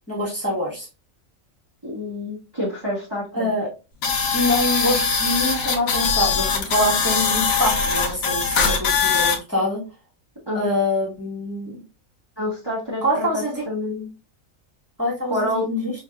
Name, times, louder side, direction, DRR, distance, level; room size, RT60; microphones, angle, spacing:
voice 1, 0.1-0.9 3.3-3.7 4.3-9.8 10.5-11.8 13.0-13.6 15.0-15.9, left 1 dB, 10° left, -5 dB, 1.5 m, -25 dB
voice 2, 1.8-3.5 10.5-10.7 12.4-14.1 15.3-15.7, left 1 dB, 20° right, -5 dB, 1.2 m, -28 dB
sound 1, 4.0-9.4, left 5 dB, 80° left, 1.2 m, -21 dB
5.4 x 2.8 x 2.2 m, 0.29 s
omnidirectional pair, 1.4 m